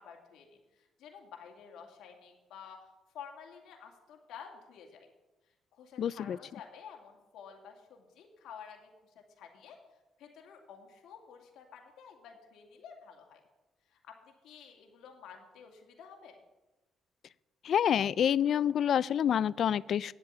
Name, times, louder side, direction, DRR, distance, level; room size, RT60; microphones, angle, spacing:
voice 1, 0.0-2.8 3.1-5.1 5.7-8.9 9.4-9.8 10.2-13.4 13.9-16.4, left 7 dB, 80° left, 2 dB, 2.3 m, -51 dB
voice 2, 6.0-6.4 17.6-20.1, left 9 dB, 65° left, 22 dB, 0.3 m, -27 dB
9.8 x 7.7 x 9.1 m, 1.1 s
cardioid pair, 90°, 0 cm